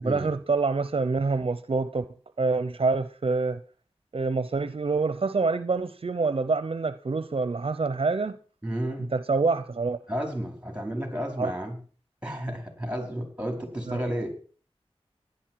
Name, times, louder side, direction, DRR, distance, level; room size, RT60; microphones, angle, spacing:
voice 1, 0.0-2.1 2.4-3.6 4.1-8.4 9.1-10.0 11.4-11.5 13.9-14.0, right 4 dB, 60° right, 0.7 m, -26 dB
voice 2, 8.6-9.1 10.1-11.7 12.2-14.3, equal, 10° right, 5.0 m, -32 dB
16.0 x 11.0 x 4.7 m
wide cardioid pair, 55°, 11 cm